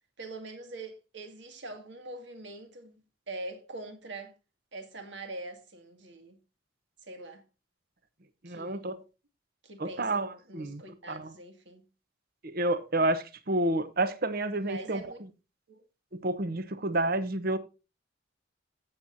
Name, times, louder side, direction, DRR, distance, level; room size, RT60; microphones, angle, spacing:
voice 1, 0.2-3.0 3.3-4.3 4.7-6.4 7.0-7.4 8.5-9.0 9.6-11.9 14.6-15.2 15.7-15.8, right 2 dB, 65° right, 2.2 m, -43 dB
voice 2, 8.4-9.0 9.8-10.8 11.1-11.3 12.4-15.0 16.1-17.6, right 2 dB, 50° right, 1.0 m, -29 dB
16.0 x 7.4 x 2.7 m
head